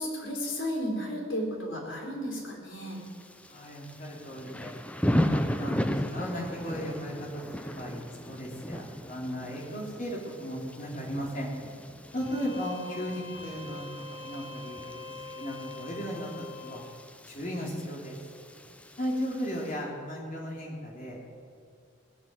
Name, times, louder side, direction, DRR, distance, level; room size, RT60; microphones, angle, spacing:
voice 1, 0.0-3.0, equal, 90° left, -1 dB, 4.3 m, -33 dB
Thunder / Rain, 2.9-19.7, equal, 5° left, 0.6 m, -36 dB
voice 2, 3.5-4.7 5.0-5.8 6.0-11.5 12.1-14.8 15.4-16.3 16.6-16.8 17.3-18.2 19.0-21.2, equal, 45° left, -2 dB, 3.3 m, -36 dB
Bowed string instrument, 12.1-16.9, left 3 dB, 70° left, 2.7 m, -44 dB
19.0 x 7.0 x 8.9 m, 2.2 s
head